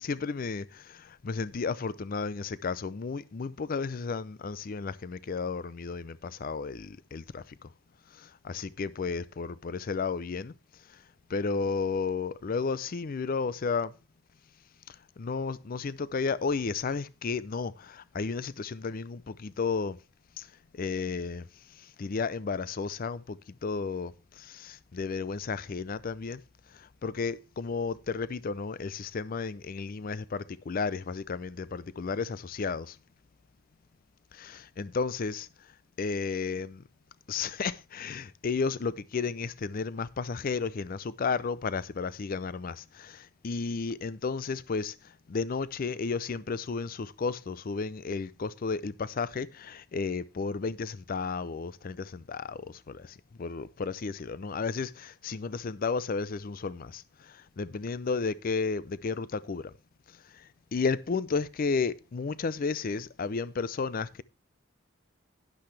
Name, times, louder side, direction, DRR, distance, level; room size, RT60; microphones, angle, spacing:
voice 1, 0.0-7.4 8.2-10.5 11.3-13.9 15.2-20.0 20.4-20.5 20.7-21.4 22.0-26.4 27.0-33.0 34.3-35.5 36.0-36.8 37.3-44.9 45.3-57.0 57.6-59.7 60.7-64.2, left 4 dB, 45° left, 0.4 m, -33 dB
11.5 x 10.5 x 3.3 m
head